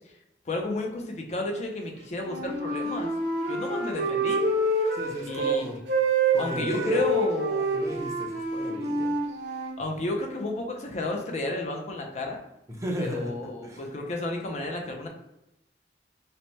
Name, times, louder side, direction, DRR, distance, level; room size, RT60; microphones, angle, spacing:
voice 1, 0.5-3.1 3.5-4.5 5.3-5.7 6.4-8.1 9.8-12.4 13.0-15.1, left 2 dB, 40° left, 2 dB, 0.4 m, -32 dB
Wind instrument woodwind instrument, 2.2-5.6 5.9-9.7, right 2 dB, 70° right, 0.7 m, -27 dB
voice 2, 4.9-5.8 6.3-7.1 7.7-9.1 12.7-13.3 13.6-13.8, equal, 20° right, 0 dB, 0.5 m, -34 dB
2.8 x 2.1 x 3.0 m, 0.88 s
head